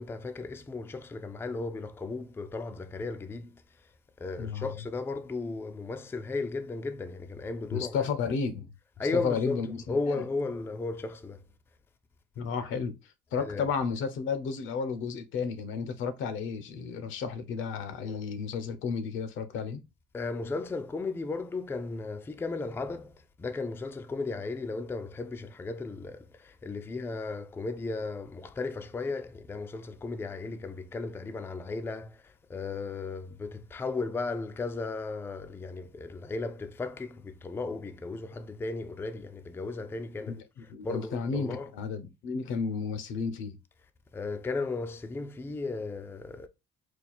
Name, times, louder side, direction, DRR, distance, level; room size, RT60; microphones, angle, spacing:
voice 1, 0.0-3.6 4.2-8.0 9.0-9.6 9.9-11.4 13.4-13.7 20.1-40.4 40.8-41.7 44.1-46.5, left 3 dB, 10° left, 0.3 m, -35 dB
voice 2, 7.7-8.7 9.1-10.2 12.4-19.8 40.3-43.6, left 5 dB, 75° left, 0.8 m, -33 dB
4.4 x 2.4 x 4.1 m
cardioid pair, 145°, 20 cm